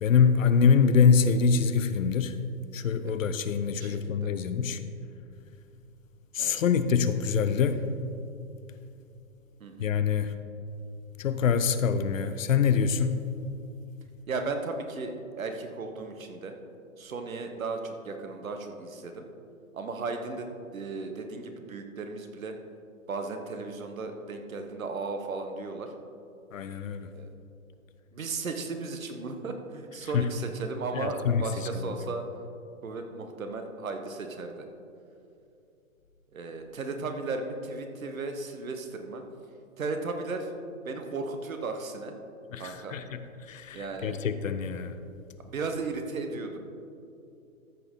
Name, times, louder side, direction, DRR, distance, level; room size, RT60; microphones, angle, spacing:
voice 1, 0.0-2.4 2.7-4.8 6.3-7.8 9.8-10.3 11.2-13.2 26.5-27.1 30.1-30.3 30.9-31.4 31.8-31.9 42.5-43.2 43.5-45.0, left 6 dB, 65° left, 11 dB, 0.7 m, -25 dB
voice 2, 3.8-4.3 6.4-6.6 9.6-9.9 14.3-16.6 17.0-19.3 19.7-22.5 23.1-25.9 27.1-27.3 28.1-32.2 32.8-34.6 36.3-39.2 39.8-40.5 40.8-42.1 42.6-43.0 43.7-44.2 45.5-46.6, right 3 dB, 70° right, 5 dB, 1.3 m, -35 dB
13.5 x 6.5 x 3.7 m, 2.6 s
figure-of-eight pair, 125°, 42 cm